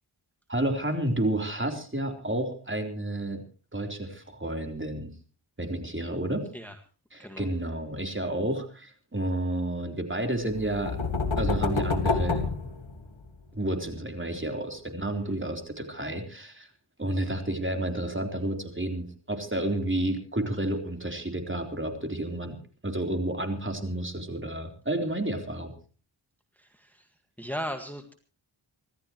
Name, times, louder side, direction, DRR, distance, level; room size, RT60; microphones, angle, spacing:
voice 1, 0.5-3.4 3.7-5.1 5.6-6.5 7.1-11.0 11.4-12.4 13.5-16.7 17.0-22.6 22.8-25.7, right 1 dB, 25° right, 4 dB, 3.8 m, -30 dB
sound 1, 10.5-13.4, left 3 dB, 75° left, 2.4 m, -28 dB
voice 2, 26.5-28.1, equal, 5° left, 5 dB, 1.8 m, -38 dB
26.5 x 13.5 x 3.1 m, 0.37 s
cardioid pair, 45°, 49 cm